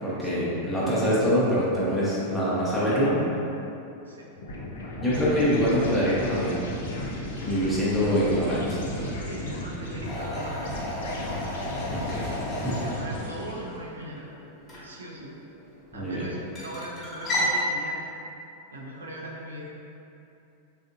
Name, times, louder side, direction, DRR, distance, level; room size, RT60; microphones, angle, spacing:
voice 1, 0.0-3.1 5.0-6.7 7.4-8.8 11.9-12.3 12.6-12.7 15.9-16.3, equal, 5° left, -10 dB, 0.8 m, -24 dB
sound 1, 4.4-13.8, left 1 dB, 60° left, 0.5 m, -35 dB
voice 2, 9.1-11.3 12.7-14.2 14.8-15.4 15.9-18.0 18.7-19.7, right 1 dB, 70° right, -2 dB, 0.4 m, -40 dB
sound 2, 10.1-17.6, equal, 25° left, 1.1 m, -34 dB
3.5 x 2.5 x 2.5 m, 2.8 s
figure-of-eight pair, 90°, 0 cm